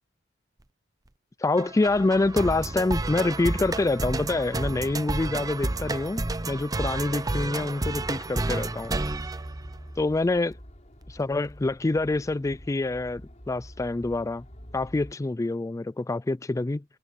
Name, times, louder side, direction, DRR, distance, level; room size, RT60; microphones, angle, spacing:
voice 1, 1.4-8.9 10.0-10.5 11.1-14.4 14.7-16.8, left 2 dB, 15° left, 0.3 m, -26 dB
sound 1, 1.6-10.1, right 2 dB, 20° right, 0.6 m, -31 dB
sound 2, 1.8-15.1, equal, 40° left, 4.9 m, -48 dB
head